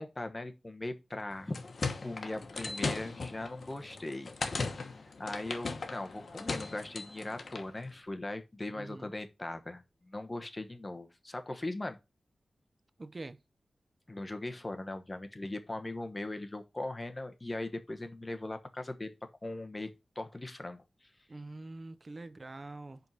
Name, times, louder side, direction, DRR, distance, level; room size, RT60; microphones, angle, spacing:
voice 1, 0.0-1.6 2.0-4.3 5.2-12.0 14.1-19.1 19.4-21.1, left 2 dB, 25° left, 1.0 m, -39 dB
sound 1, 1.3-7.7, left 4 dB, 65° left, 1.1 m, -38 dB
voice 2, 8.8-9.1 13.0-13.4 21.3-23.0, right 2 dB, 40° right, 0.6 m, -45 dB
5.3 x 4.6 x 5.4 m
wide cardioid pair, 85°, 0 cm